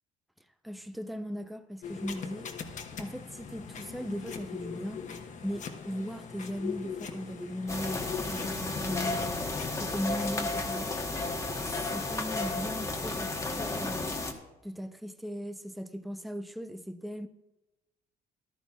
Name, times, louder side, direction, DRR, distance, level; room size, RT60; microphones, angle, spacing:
voice 1, 0.6-2.5 3.0-5.0 5.4-10.9 11.9-14.1 14.6-17.3, equal, ahead, 0.6 m, -38 dB
sound 1, 1.8-10.3, left 6 dB, 50° left, 1.1 m, -41 dB
sound 2, 7.7-14.3, left 2 dB, 15° left, 1.2 m, -33 dB
14.5 x 12.0 x 2.4 m
cardioid pair, 110°, 17 cm